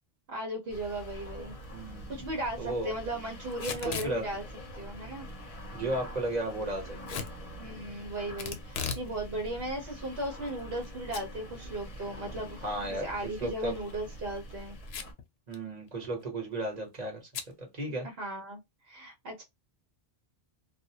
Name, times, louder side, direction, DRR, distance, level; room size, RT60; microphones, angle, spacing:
voice 1, 0.3-1.5 2.1-4.4 4.8-5.3 7.6-12.6 13.0-14.8 18.2-18.6 18.9-19.4, right 1 dB, 70° right, 1.0 m, -36 dB
sound 1, 0.7-15.1, equal, 40° left, 0.7 m, -45 dB
voice 2, 1.7-2.1 2.6-2.9 3.8-4.2 5.7-7.3 12.6-13.0 13.4-13.8 15.5-17.2 17.6-18.1, right 1 dB, 45° right, 1.2 m, -34 dB
Packing tape duct tape / Tearing, 3.5-4.1 7.1-7.3 8.4-9.1 9.5-9.6 10.2-10.9 11.1-11.2 11.6-11.7 13.7-13.9 14.9-15.2 15.5-15.6 15.9-16.2 17.3-17.5, left 6 dB, 85° left, 0.8 m, -37 dB
2.5 x 2.1 x 2.8 m
omnidirectional pair, 1.0 m